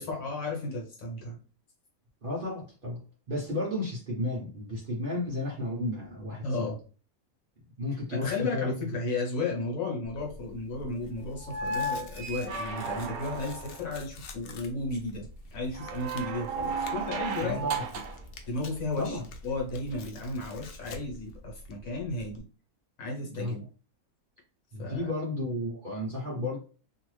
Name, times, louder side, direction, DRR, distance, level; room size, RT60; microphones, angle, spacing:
voice 1, 0.0-1.4 6.4-6.8 8.1-15.3 15.5-17.7 18.5-22.4 23.0-23.6 24.8-25.1, left 2 dB, 65° left, -1 dB, 1.3 m, -34 dB
voice 2, 2.2-3.0 3.3-6.7 7.8-8.7 17.4-17.8 19.0-19.2 23.2-23.5 24.7-26.6, left 1 dB, 45° right, -3 dB, 0.8 m, -33 dB
Tearing, 10.0-22.4, left 1 dB, 85° left, 0.5 m, -47 dB
sound 1, 11.4-13.9 15.7-18.2 19.9-20.0, right 3 dB, 75° right, 1.0 m, -34 dB
2.7 x 2.4 x 3.1 m, 0.37 s
omnidirectional pair, 1.6 m